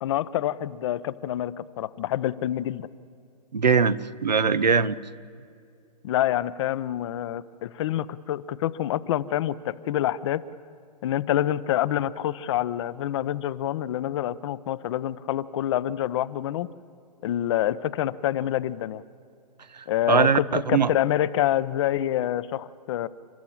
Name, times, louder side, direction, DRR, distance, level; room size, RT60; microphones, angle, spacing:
voice 1, 0.0-2.9 6.0-10.4 11.0-16.7 17.2-19.0 19.9-23.1, left 12 dB, 45° left, 16 dB, 0.8 m, -27 dB
voice 2, 3.5-5.0 20.1-20.9, right 5 dB, 85° right, 15 dB, 0.9 m, -21 dB
29.5 x 13.0 x 7.3 m, 2.4 s
hypercardioid pair, 125°, 21 cm